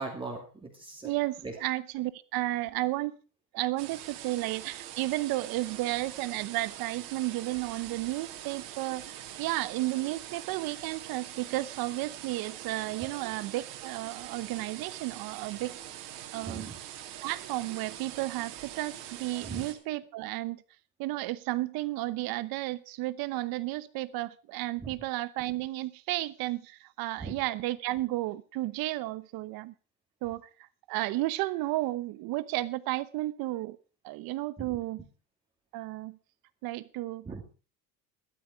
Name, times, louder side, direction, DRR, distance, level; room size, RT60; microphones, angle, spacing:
voice 1, 0.0-1.1 1.4-1.5 16.4-16.7 19.4-19.6 24.8-24.9 27.2-27.3 34.6-34.7 37.2-37.4, right 3 dB, 10° right, 2.7 m, -39 dB
voice 2, 1.0-3.2 3.5-15.8 16.3-16.7 17.2-20.6 21.0-29.7 30.2-30.5 30.9-33.8 34.0-35.1 35.7-36.2 36.6-37.3, right 17 dB, 55° right, 1.0 m, -33 dB
sound 1, 3.8-19.7, right 12 dB, 75° right, 2.6 m, -44 dB
12.5 x 12.5 x 4.7 m
cardioid pair, 155°, 43 cm